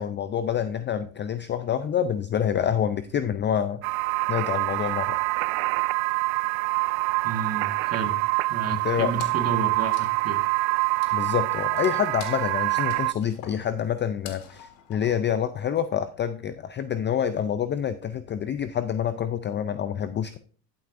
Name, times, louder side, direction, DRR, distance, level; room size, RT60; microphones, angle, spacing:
voice 1, 0.0-3.8 4.3-5.2 8.7-9.1 11.1-20.4, left 9 dB, 25° left, 12 dB, 0.4 m, -27 dB
sound 1, 3.8-13.1, right 24 dB, 60° right, 0.5 m, -26 dB
voice 2, 7.2-8.2 8.5-10.4, right 5 dB, 30° right, 5 dB, 1.7 m, -31 dB
Wood, 9.2-15.9, left 8 dB, 65° left, 1.8 m, -48 dB
12.0 x 7.8 x 2.5 m, 0.41 s
supercardioid pair, 105°, 50 cm